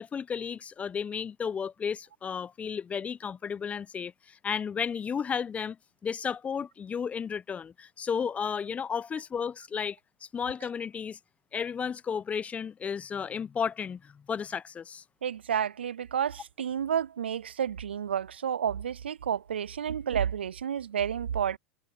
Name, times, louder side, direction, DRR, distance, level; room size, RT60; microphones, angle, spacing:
voice 1, 0.0-5.8 6.0-11.2 11.5-15.0, left 7 dB, 25° left, 0.8 m, -33 dB
voice 2, 15.2-21.6, right 8 dB, 85° right, 0.4 m, -30 dB
hypercardioid pair, 90°, 6 cm